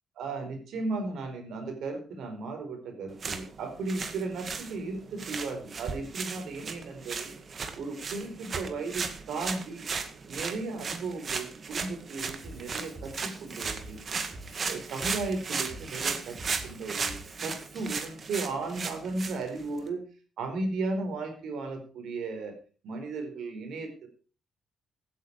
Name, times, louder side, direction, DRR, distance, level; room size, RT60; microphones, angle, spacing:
voice 1, 0.2-7.3 7.8-9.9 10.3-14.0 14.7-16.4 16.6-17.2 17.4-20.0 20.4-22.6 22.8-24.1, right 3 dB, 75° right, 5 dB, 4.7 m, -35 dB
sound 1, 3.1-19.9, right 5 dB, 45° right, 2.0 m, -36 dB
Drum kit / Drum, 12.4-18.0, right 1 dB, 20° right, 3.6 m, -46 dB
15.5 x 9.5 x 4.9 m, 0.37 s
cardioid pair, 90°, 0 cm